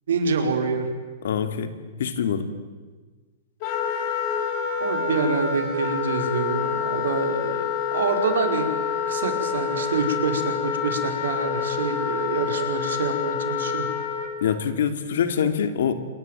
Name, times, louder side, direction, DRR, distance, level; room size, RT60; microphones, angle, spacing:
voice 1, 0.1-0.9 4.8-7.6 7.9-8.7 9.1-13.9, right 4 dB, 90° right, 5 dB, 5.2 m, -26 dB
voice 2, 1.2-2.5 14.4-15.9, left 7 dB, 75° left, 9 dB, 2.9 m, -25 dB
Wind instrument woodwind instrument, 3.6-14.3, left 7 dB, 35° left, 4.3 m, -27 dB
27.5 x 23.0 x 9.3 m, 1.4 s
supercardioid pair, 165°, 0 cm